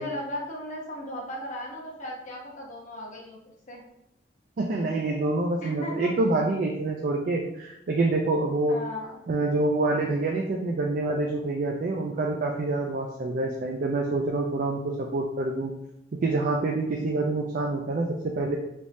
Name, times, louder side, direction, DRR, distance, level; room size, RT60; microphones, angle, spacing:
voice 1, 0.0-3.4 3.7-3.8 5.6-6.1 8.7-9.2, left 1 dB, 45° left, -2 dB, 0.9 m, -36 dB
voice 2, 4.6-8.8 9.3-15.7 16.2-18.6, right 2 dB, 50° right, 1 dB, 0.4 m, -26 dB
3.4 x 3.1 x 2.6 m, 0.82 s
head